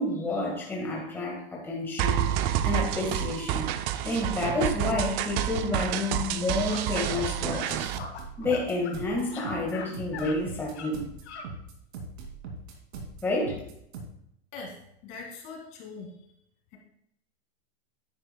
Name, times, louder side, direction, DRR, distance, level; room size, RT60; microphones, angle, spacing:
voice 1, 0.0-3.7 4.0-7.9 8.4-11.0 13.2-13.6, left 2 dB, 5° left, -4 dB, 1.7 m, -30 dB
sound 1, 2.0-8.0, right 11 dB, 30° right, 0.4 m, -29 dB
sound 2, 6.7-6.8 7.1-7.3 7.5-7.7 8.0-9.0 9.2-9.9 10.1-10.4 10.8-10.9 11.2-11.5, left 6 dB, 90° left, 1.7 m, -40 dB
sound 3, 7.7-14.0, right 3 dB, 70° right, 2.6 m, -40 dB
voice 2, 14.5-16.2 16.7-16.8, left 4 dB, 40° left, 0 dB, 2.2 m, -42 dB
10.0 x 8.8 x 2.3 m, 0.75 s
supercardioid pair, 145°, 33 cm